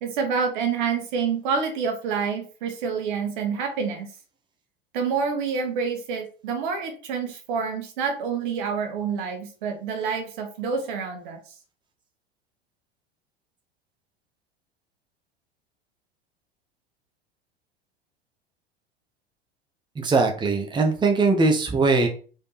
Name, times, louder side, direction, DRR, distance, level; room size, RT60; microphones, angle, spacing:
voice 1, 0.0-4.1 4.9-11.4, right 6 dB, 55° right, 4 dB, 1.9 m, -27 dB
voice 2, 20.0-22.1, right 3 dB, 15° right, 3 dB, 1.3 m, -21 dB
5.3 x 4.8 x 4.2 m, 0.39 s
figure-of-eight pair, 80°, 29 cm